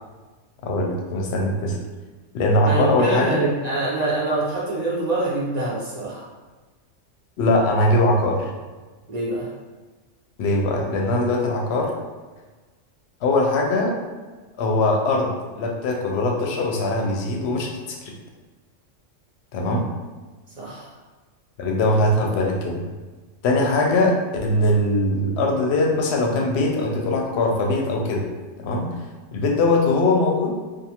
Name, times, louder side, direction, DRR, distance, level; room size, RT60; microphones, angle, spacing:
voice 1, 0.6-1.8 2.3-3.4 7.4-8.5 10.4-11.9 13.2-14.0 14.6-18.1 19.5-19.9 21.6-22.8 23.4-28.3 28.6-29.0 29.3-30.6, left 2 dB, 65° left, 0 dB, 0.7 m, -21 dB
voice 2, 2.7-6.2 9.1-9.5 20.6-20.9, right 2 dB, 50° right, -6 dB, 0.5 m, -25 dB
2.5 x 2.4 x 2.8 m, 1.3 s
omnidirectional pair, 1.3 m